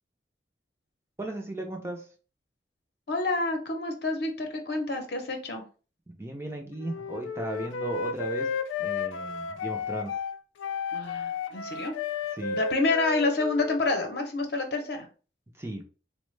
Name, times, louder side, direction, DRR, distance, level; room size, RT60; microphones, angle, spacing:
voice 1, 1.2-2.1 6.1-8.5 8.8-10.1 12.3-12.6 15.5-15.8, right 1 dB, 15° right, 2 dB, 0.4 m, -36 dB
voice 2, 3.1-5.6 10.9-11.9 12.5-15.1, left 3 dB, 60° left, 4 dB, 0.7 m, -28 dB
Wind instrument woodwind instrument, 6.8-14.2, left 5 dB, 85° left, 0.3 m, -33 dB
4.0 x 2.1 x 3.1 m, 0.37 s
head